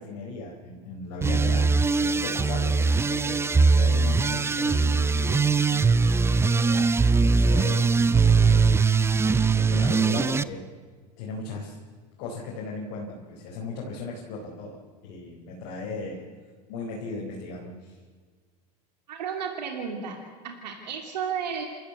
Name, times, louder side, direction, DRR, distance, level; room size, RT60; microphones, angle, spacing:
voice 1, 0.0-8.9 9.3-10.6 11.2-11.8 12.2-16.2 16.7-18.0, left 3 dB, 60° left, -2 dB, 4.6 m, -37 dB
sound 1, 1.2-10.4, right 4 dB, 10° right, 0.6 m, -21 dB
voice 2, 19.1-20.2 20.4-21.6, right 7 dB, 90° right, 2 dB, 3.0 m, -32 dB
28.0 x 14.0 x 8.3 m, 1.5 s
hypercardioid pair, 105°, 21 cm